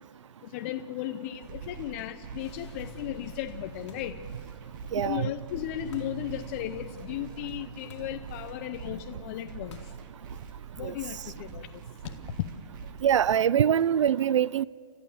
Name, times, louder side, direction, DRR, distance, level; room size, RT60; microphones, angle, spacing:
voice 1, 0.4-4.2 5.0-9.8 10.7-11.7, left 13 dB, 30° left, 0.6 m, -36 dB
sound 1, 1.5-13.5, right 6 dB, 40° right, 2.3 m, -45 dB
sound 2, 2.4-9.7, left 4 dB, 5° left, 3.1 m, -55 dB
sound 3, 3.9-4.3 5.9-6.3 7.9-8.2 9.7-10.1 10.3-10.4 12.0-12.4, left 6 dB, 70° left, 2.6 m, -49 dB
voice 2, 4.9-5.3 10.8-10.9 13.0-14.7, right 9 dB, 85° right, 0.5 m, -23 dB
29.5 x 13.5 x 6.9 m
hypercardioid pair, 160°, 15 cm